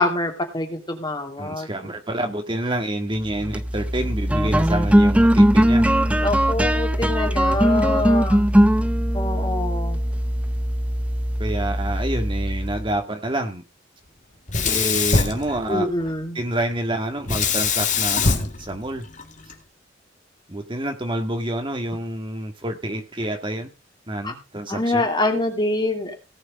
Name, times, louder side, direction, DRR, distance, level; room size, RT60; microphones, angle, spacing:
voice 1, 0.0-1.7 6.2-8.4 9.1-10.0 15.7-16.4 24.2-24.3 24.7-26.1, left 2 dB, 25° left, 4 dB, 2.7 m, -25 dB
voice 2, 1.4-5.9 11.4-13.6 14.6-15.9 16.3-19.0 20.5-23.7 24.1-25.1, right 1 dB, 25° right, 4 dB, 1.9 m, -28 dB
sound 1, 3.3-12.9, equal, 5° right, 0.6 m, -20 dB
Sink (filling or washing), 14.5-16.1 17.3-19.5, left 4 dB, 40° left, 2.1 m, -23 dB
18.0 x 6.5 x 5.4 m, 0.29 s
head